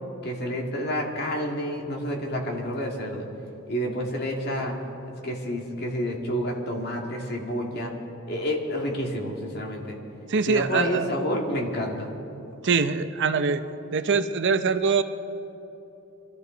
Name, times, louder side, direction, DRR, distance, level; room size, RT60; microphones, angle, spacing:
voice 1, 0.2-3.3 3.7-4.7 5.2-7.9 8.3-10.0 10.5-12.1, equal, 50° left, 0 dB, 2.3 m, -29 dB
voice 2, 10.3-11.1 12.6-13.6 13.9-15.0, right 5 dB, 60° right, 10 dB, 0.6 m, -23 dB
24.5 x 14.0 x 4.0 m, 3.0 s
head